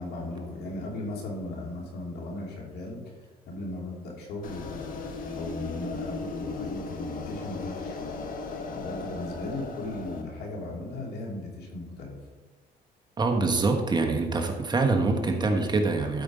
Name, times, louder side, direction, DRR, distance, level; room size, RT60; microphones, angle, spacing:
voice 1, 0.0-3.0 3.5-8.2 8.7-12.2, left 2 dB, 75° left, -1 dB, 2.9 m, -37 dB
sound 1, 4.4-10.2, left 3 dB, 55° left, 1.5 m, -36 dB
voice 2, 13.2-16.2, right 3 dB, 25° right, 3 dB, 1.3 m, -25 dB
13.0 x 5.3 x 5.0 m, 1.3 s
cardioid pair, 110°, 17 cm